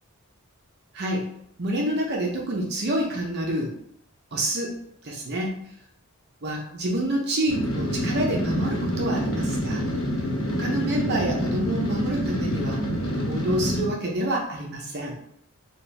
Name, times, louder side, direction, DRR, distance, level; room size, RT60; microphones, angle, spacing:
voice 1, 0.9-1.3 1.6-3.7 4.3-4.8 5.0-5.6 6.4-9.8 10.5-12.8 13.2-15.1, right 1 dB, 50° right, -1 dB, 0.6 m, -27 dB
sound 1, 7.5-13.9, equal, 65° left, 1.0 m, -27 dB
4.2 x 2.3 x 3.2 m, 0.71 s
head